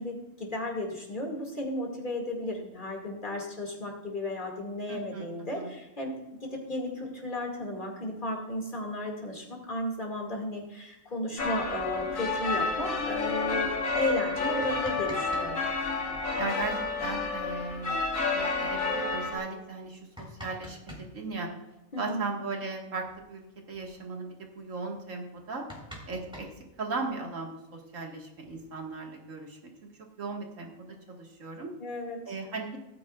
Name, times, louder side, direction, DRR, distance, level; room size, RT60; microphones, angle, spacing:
voice 1, 0.0-6.1 6.4-15.6 21.9-22.3 31.8-32.4, left 1 dB, 35° left, 0 dB, 2.5 m, -34 dB
voice 2, 4.9-5.3 5.5-5.7 16.4-18.0 18.3-21.5 22.0-25.7 26.1-26.5 26.8-29.6 30.2-31.7 32.3-32.8, right 3 dB, 70° right, 0 dB, 2.2 m, -37 dB
sound 1, 11.4-19.4, left 3 dB, 75° left, 2.0 m, -30 dB
sound 2, 14.6-15.5 15.7-15.8 17.6-17.7 18.1-18.2 18.8-18.9 19.7-21.1 22.6-22.7 23.0-23.2 23.5-23.9 24.5-24.6 24.9-25.0 25.3-27.2 28.1-29.0, equal, 5° right, 2.6 m, -46 dB
17.5 x 9.2 x 2.4 m, 0.96 s
omnidirectional pair, 1.4 m